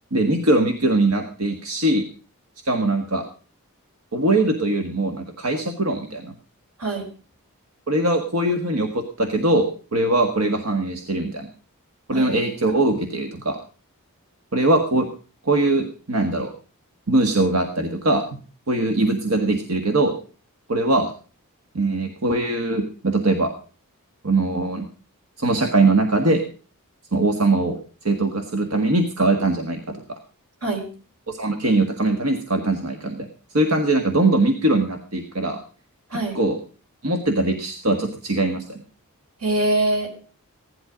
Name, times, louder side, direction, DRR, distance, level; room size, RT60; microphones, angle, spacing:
voice 1, 0.1-2.0 2.6-3.2 4.1-6.3 7.9-11.5 12.1-13.6 14.5-15.1 15.4-16.5 17.1-18.2 18.7-20.1 20.7-21.1 21.7-23.5 24.2-24.8 25.4-26.4 27.1-27.8 28.0-30.0 31.3-33.3 33.5-35.6 36.3-36.6 37.0-38.8, right 2 dB, 70° right, 5 dB, 1.6 m, -21 dB
voice 2, 39.4-40.1, right 1 dB, 90° right, 3 dB, 5.2 m, -23 dB
16.5 x 11.5 x 5.1 m, 0.38 s
head